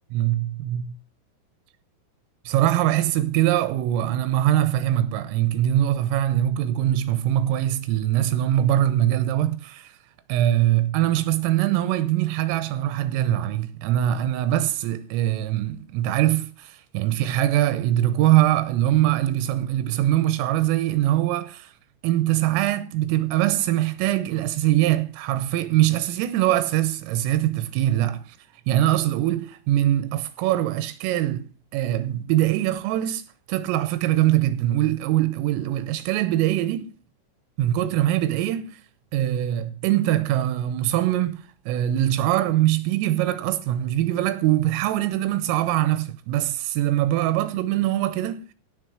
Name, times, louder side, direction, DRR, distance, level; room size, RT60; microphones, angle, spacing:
voice 1, 0.1-0.9 2.5-9.9 10.3-21.7 22.0-28.4 28.7-33.2 33.5-36.9 37.6-38.8 39.1-48.5, right 13 dB, 85° right, 3.4 m, -22 dB
16.5 x 6.5 x 6.2 m
omnidirectional pair, 5.9 m